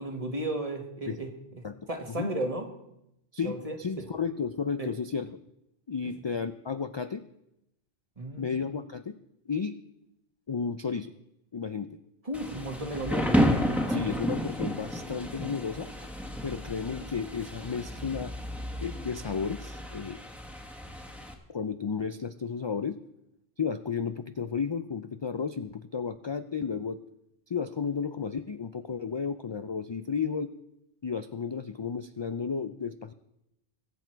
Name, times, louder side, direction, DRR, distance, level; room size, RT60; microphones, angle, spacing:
voice 1, 0.0-2.7 3.4-4.1 4.8-4.9 8.2-8.6 12.3-13.3, right 1 dB, 35° right, 3 dB, 1.8 m, -34 dB
voice 2, 3.3-5.3 5.9-7.2 8.4-9.2 9.5-9.8 10.5-11.1 11.5-12.0 13.9-16.1 16.4-18.3 18.8-20.2 21.5-23.0 23.6-27.0 27.5-30.5 31.0-33.1, left 6 dB, 45° left, 11 dB, 0.3 m, -33 dB
Thunder / Rain, 12.3-21.3, equal, ahead, 1.5 m, -31 dB
22.5 x 8.1 x 4.6 m, 0.84 s
omnidirectional pair, 1.1 m